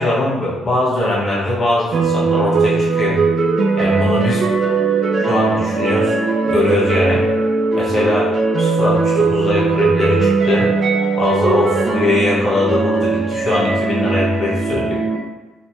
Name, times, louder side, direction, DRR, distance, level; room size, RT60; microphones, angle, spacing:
voice 1, 0.0-3.2 3.8-4.5 5.2-6.2 6.4-7.2 7.7-10.7 11.2-15.0, left 2 dB, 35° left, -6 dB, 1.4 m, -20 dB
sound 1, 1.9-15.2, right 4 dB, 50° right, 0.5 m, -18 dB
3.3 x 2.9 x 2.9 m, 1.1 s
cardioid pair, 90°, 0 cm